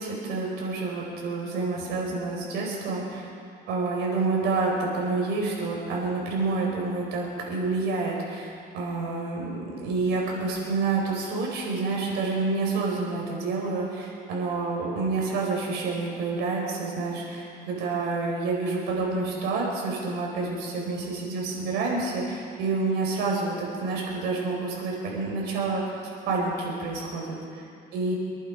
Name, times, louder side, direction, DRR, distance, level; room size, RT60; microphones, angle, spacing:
voice 1, 0.0-3.3 3.7-27.4 27.9-28.2, right 3 dB, 85° right, -2 dB, 4.6 m, -28 dB
25.0 x 11.0 x 5.1 m, 2.4 s
cardioid pair, 110°, 17 cm